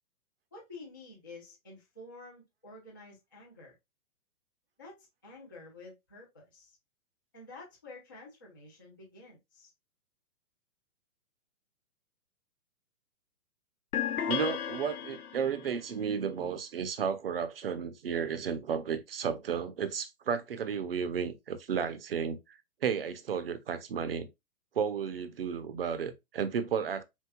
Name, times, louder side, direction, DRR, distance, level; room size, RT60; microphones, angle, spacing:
voice 1, 0.5-3.7 4.8-6.8 7.3-9.7, left 2 dB, 15° left, 0.5 m, -50 dB
sound 1, 13.9-15.7, left 9 dB, 90° left, 1.1 m, -34 dB
voice 2, 14.3-22.4 22.8-24.3 24.8-27.0, right 7 dB, 40° right, 0.6 m, -33 dB
4.5 x 4.3 x 2.2 m
hypercardioid pair, 175°, 44 cm